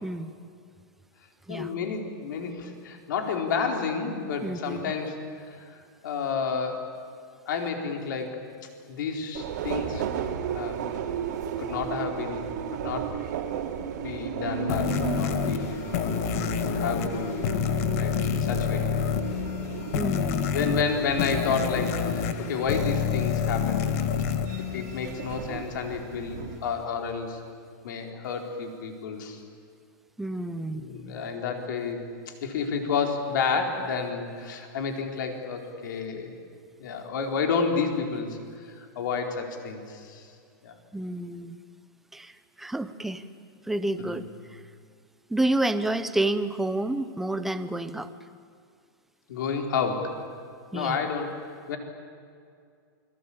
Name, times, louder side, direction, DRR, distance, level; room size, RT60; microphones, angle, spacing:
voice 1, 0.0-0.3 1.5-1.7 4.4-4.9 19.9-20.5 30.2-30.9 40.9-41.6 42.1-43.2 43.7-44.2 44.5-44.6 45.3-48.1 50.7-51.0, right 1 dB, ahead, 11 dB, 0.7 m, -29 dB
voice 2, 1.5-6.9 7.5-8.4 8.9-10.1 10.5-11.1 11.6-13.1 14.0-15.8 16.5-18.8 20.5-23.9 24.6-27.4 27.8-29.4 30.7-36.3 36.8-38.4 38.8-40.3 40.6-40.8 44.0-44.2 49.3-50.2 50.7-51.8, left 5 dB, 60° left, 3 dB, 4.4 m, -31 dB
Subway metro underground, 9.3-26.6, right 8 dB, 55° right, 2.9 m, -35 dB
sound 1, 14.7-25.5, left 7 dB, 45° left, 1.6 m, -28 dB
28.5 x 23.5 x 8.8 m, 2.3 s
supercardioid pair, 175°, 11 cm